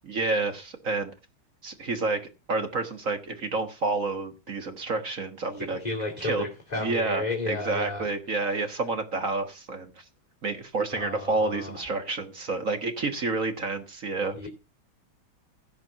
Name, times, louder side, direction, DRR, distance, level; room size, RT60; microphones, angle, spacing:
voice 1, 0.0-1.1 1.6-2.2 2.5-5.8 6.2-6.5 6.8-10.0 10.4-14.4, right 3 dB, 40° right, 1.7 m, -29 dB
voice 2, 5.6-8.1 8.4-8.7 10.9-11.8 14.3-14.5, left 3 dB, 20° left, 2.8 m, -33 dB
16.5 x 6.1 x 5.8 m
omnidirectional pair, 2.4 m